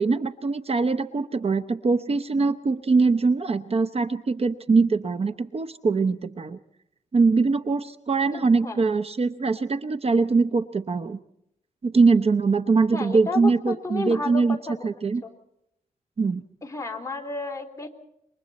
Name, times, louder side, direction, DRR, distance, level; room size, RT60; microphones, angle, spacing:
voice 1, 0.0-6.6 7.1-11.2 11.8-14.6 14.8-15.2 16.2-16.4, right 4 dB, 45° right, 10 dB, 0.8 m, -22 dB
voice 2, 8.3-8.8 12.9-14.8 15.2-15.3 16.6-17.9, left 3 dB, 20° left, 3 dB, 3.3 m, -32 dB
27.5 x 24.0 x 4.2 m, 0.79 s
wide cardioid pair, 125°, 14 cm